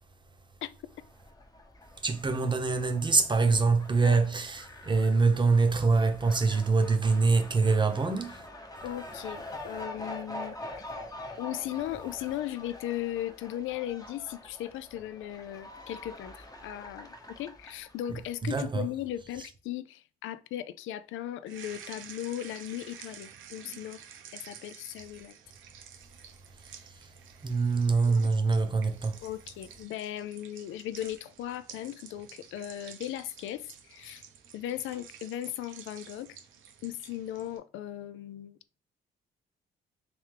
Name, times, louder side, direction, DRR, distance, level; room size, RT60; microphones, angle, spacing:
Fowl, 0.9-18.2, left 1 dB, 20° left, 0.9 m, -45 dB
voice 1, 2.0-8.4 18.4-18.9 27.4-29.2, right 4 dB, 25° right, 0.8 m, -25 dB
voice 2, 8.8-10.6 11.4-24.0 24.3-25.4 28.1-28.3 29.2-34.2 34.5-36.4 36.8-38.6, left 12 dB, 85° left, 0.4 m, -37 dB
sound 1, 21.5-37.6, right 8 dB, 80° right, 0.8 m, -50 dB
3.4 x 3.2 x 3.3 m
cardioid pair, 90°, 20 cm